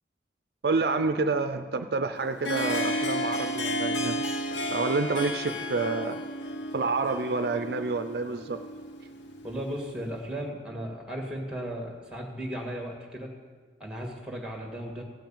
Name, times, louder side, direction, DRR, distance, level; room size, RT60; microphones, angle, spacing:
voice 1, 0.6-4.2 4.5-6.2 6.7-8.6, right 3 dB, 60° right, 9 dB, 0.5 m, -28 dB
Harp, 2.2-9.9, equal, 85° left, 1.0 m, -32 dB
voice 2, 9.4-13.3 13.8-15.0, equal, 5° right, 1 dB, 1.9 m, -36 dB
15.5 x 5.9 x 8.7 m, 1.5 s
head